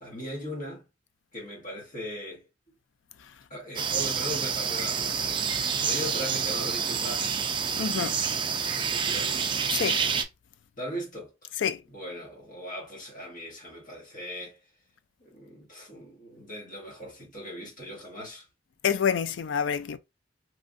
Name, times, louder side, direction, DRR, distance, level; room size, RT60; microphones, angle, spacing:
voice 1, 0.0-0.8 1.3-2.4 3.5-7.3 8.6-9.7 10.8-11.6 11.9-14.6 15.2-18.5, equal, 45° left, 1.3 m, -39 dB
sound 1, 3.8-10.2, right 6 dB, 25° right, 0.3 m, -28 dB
voice 2, 7.8-8.2 9.7-10.0 11.6-11.8 18.8-20.0, left 7 dB, 85° left, 0.4 m, -27 dB
3.1 x 2.5 x 2.5 m
head